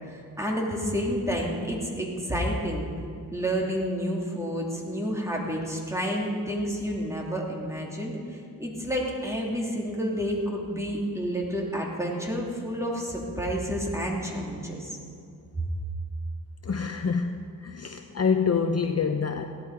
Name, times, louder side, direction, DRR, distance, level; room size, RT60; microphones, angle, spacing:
voice 1, 0.1-2.9 3.3-15.0 15.6-15.7, equal, 10° right, -2 dB, 2.9 m, -30 dB
voice 2, 16.6-17.4 17.6-19.4, left 5 dB, 45° left, 6 dB, 0.7 m, -26 dB
16.5 x 11.5 x 4.9 m, 2.4 s
cardioid pair, 70°, 36 cm